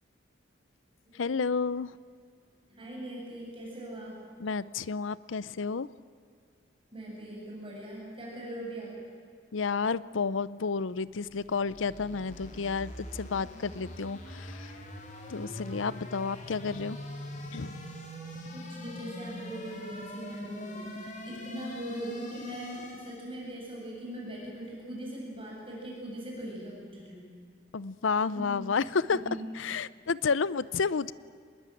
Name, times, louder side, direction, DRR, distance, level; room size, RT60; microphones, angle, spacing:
voice 1, 1.2-1.9 4.4-5.9 9.5-14.7 15.3-17.0 17.5-17.8 27.7-29.2 29.6-31.1, left 5 dB, 85° left, 19 dB, 0.6 m, -31 dB
voice 2, 2.7-4.3 6.9-9.0 18.5-27.3 28.3-28.6 29.1-29.4, right 1 dB, 25° right, -3 dB, 7.6 m, -41 dB
sound 1, 11.1-23.3, left 1 dB, 40° left, 3.8 m, -43 dB
26.0 x 20.5 x 9.2 m, 2.2 s
head